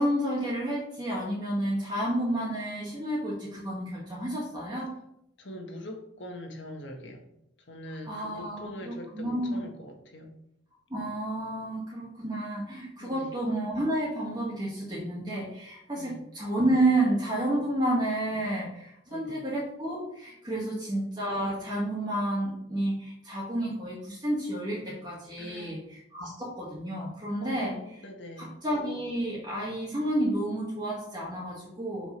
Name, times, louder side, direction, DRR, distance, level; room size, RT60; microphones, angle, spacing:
voice 1, 0.0-4.9 8.1-9.7 10.9-27.8 28.4-32.2, right 1 dB, 25° right, -6 dB, 1.7 m, -30 dB
voice 2, 5.4-7.3 7.7-10.4 13.0-13.4 16.0-16.2 17.6-17.7 19.1-19.5 20.5-20.9 25.4-25.9 27.4-28.6, left 1 dB, 90° left, 3 dB, 1.6 m, -43 dB
6.4 x 5.2 x 5.3 m, 0.77 s
head